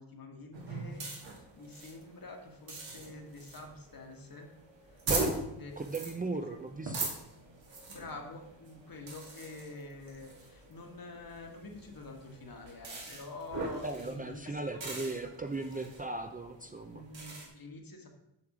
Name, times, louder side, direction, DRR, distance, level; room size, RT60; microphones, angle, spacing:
voice 1, 0.0-4.5 4.9-5.0 5.6-5.7 6.3-6.6 7.9-15.3 15.6-15.9 16.9-18.1, left 2 dB, 50° left, 3 dB, 1.5 m, -47 dB
sound 1, 0.5-17.5, right 3 dB, 80° right, 2.1 m, -42 dB
voice 2, 5.1-5.4 5.8-7.1 13.8-17.0, right 2 dB, 20° right, 5 dB, 0.5 m, -37 dB
7.1 x 6.6 x 4.9 m, 0.83 s
wide cardioid pair, 110°, 44 cm